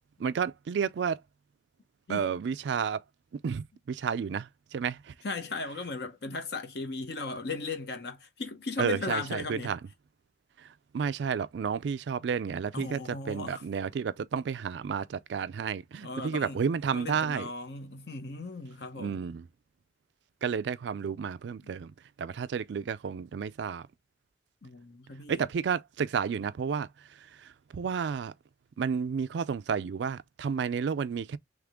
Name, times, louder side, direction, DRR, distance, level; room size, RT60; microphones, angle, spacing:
voice 1, 0.2-1.2 2.1-3.0 3.3-5.1 8.8-9.8 10.6-17.5 19.0-19.5 20.4-23.9 25.3-28.3 28.8-31.4, right 6 dB, 75° right, 0.3 m, -31 dB
voice 2, 5.2-9.7 12.7-13.6 16.0-16.6 16.9-19.2 21.6-21.7 24.6-25.4, left 3 dB, 60° left, 0.9 m, -37 dB
3.6 x 3.3 x 3.5 m
head